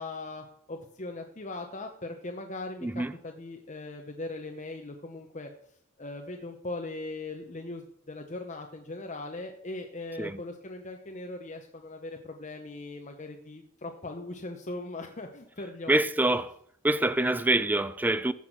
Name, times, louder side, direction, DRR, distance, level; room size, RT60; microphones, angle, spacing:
voice 1, 0.0-5.5 6.0-16.0, left 2 dB, 35° left, 0.9 m, -39 dB
voice 2, 2.8-3.1 10.2-10.4 15.9-16.5 16.8-18.3, right 2 dB, 10° right, 0.4 m, -25 dB
15.0 x 6.0 x 6.1 m
head